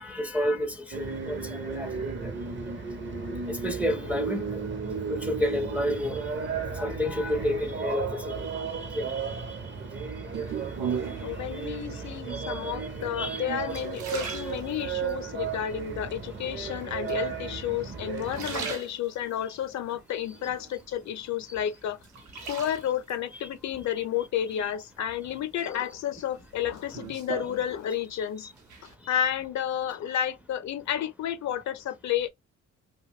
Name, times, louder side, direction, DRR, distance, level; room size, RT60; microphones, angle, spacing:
voice 1, 0.0-1.9 2.2-2.3 3.5-4.6 5.1-6.2 6.8-8.5 8.9-9.1 12.3-12.7 13.1-13.4 14.2-14.5 22.4-22.5, left 1 dB, 5° right, 0.4 m, -30 dB
sound 1, 0.9-18.7, right 5 dB, 40° right, 0.7 m, -34 dB
sound 2, 10.3-11.4 12.2-12.7 13.2-15.2 15.7-16.3 17.1-17.8 18.1-19.4 19.9-21.1 21.5-23.2 24.5-25.1 25.6-28.2 28.4-28.9, right 7 dB, 70° right, 0.9 m, -38 dB
voice 2, 11.2-22.0 22.5-28.5 28.8-32.3, left 10 dB, 65° left, 0.6 m, -31 dB
2.5 x 2.2 x 3.5 m
cardioid pair, 90°, 30 cm